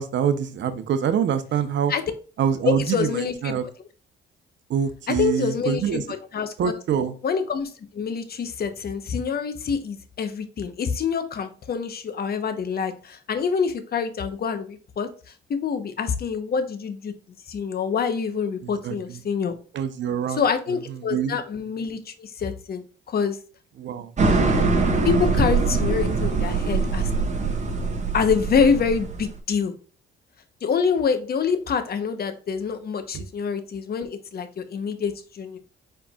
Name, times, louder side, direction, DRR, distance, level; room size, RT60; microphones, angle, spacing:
voice 1, 0.0-1.9 2.4-3.6 4.7-6.0 6.6-7.1 18.6-19.2 19.7-20.4 21.1-21.4 23.8-24.1 33.1-33.2, right 8 dB, 65° right, 10 dB, 0.9 m, -25 dB
voice 2, 2.6-3.6 5.1-6.7 7.2-15.1 15.5-17.1 17.5-19.6 20.3-23.4 25.0-27.1 28.1-29.7 30.6-35.6, left 6 dB, 50° left, 9 dB, 1.0 m, -26 dB
sound 1, 24.2-29.4, right 4 dB, 35° right, 1.4 m, -23 dB
4.8 x 4.6 x 2.4 m, 0.39 s
cardioid pair, 90°, 20 cm